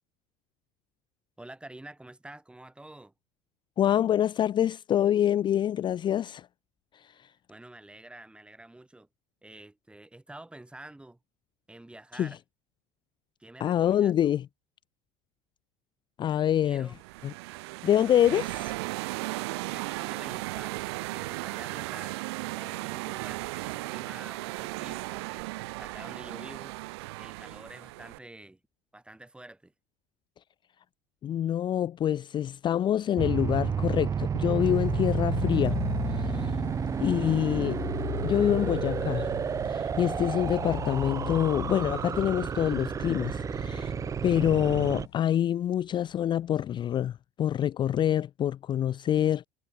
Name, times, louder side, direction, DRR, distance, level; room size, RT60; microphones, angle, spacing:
voice 1, 1.4-3.1 7.5-9.1 9.4-11.2 11.7-12.4 13.4-14.4 16.6-17.0 19.7-20.8 21.1-22.2 22.5-25.5 25.8-26.8 27.2-28.6 28.9-29.7, right 1 dB, 5° right, 6.4 m, -48 dB
voice 2, 3.8-6.5 6.9-7.3 12.1-12.4 13.6-14.5 16.2-16.9 17.2-17.3 17.8-18.7 31.2-35.8 36.1-36.6 37.0-37.8 38.2-39.3 39.6-43.9 44.2-49.5, left 10 dB, 35° left, 0.5 m, -26 dB
sound 1, 16.9-28.2, right 23 dB, 80° right, 0.6 m, -36 dB
sound 2, 33.2-45.1, right 7 dB, 25° right, 0.5 m, -31 dB
sound 3, 34.6-45.1, left 20 dB, 85° left, 0.6 m, -38 dB
supercardioid pair, 95°, 14 cm